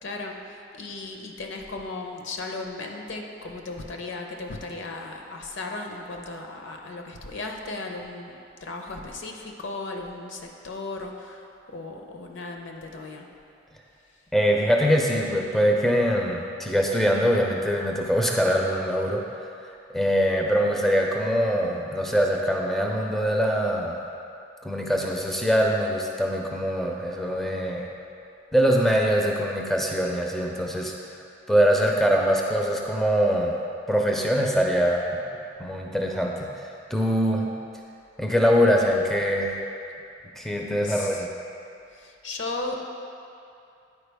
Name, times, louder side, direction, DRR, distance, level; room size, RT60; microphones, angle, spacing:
voice 1, 0.0-13.3 40.7-41.3 41.9-42.8, left 2 dB, 65° left, 2 dB, 0.7 m, -36 dB
voice 2, 14.3-19.2 19.9-24.0 24.6-27.9 28.5-30.9 31.5-33.5 33.9-35.2 35.6-37.5 38.2-39.6 40.4-41.3, equal, ahead, -1 dB, 0.4 m, -23 dB
9.6 x 4.5 x 3.4 m, 2.6 s
head